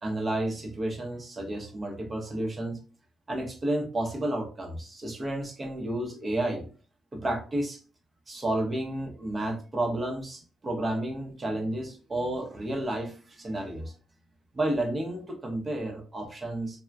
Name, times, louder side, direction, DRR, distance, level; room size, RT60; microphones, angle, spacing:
voice 1, 0.0-2.8 3.3-6.7 7.1-7.8 8.3-13.9 14.5-16.8, right 1 dB, 30° right, 2 dB, 0.7 m, -31 dB
2.2 x 2.1 x 3.4 m, 0.38 s
cardioid pair, 90°, 0 cm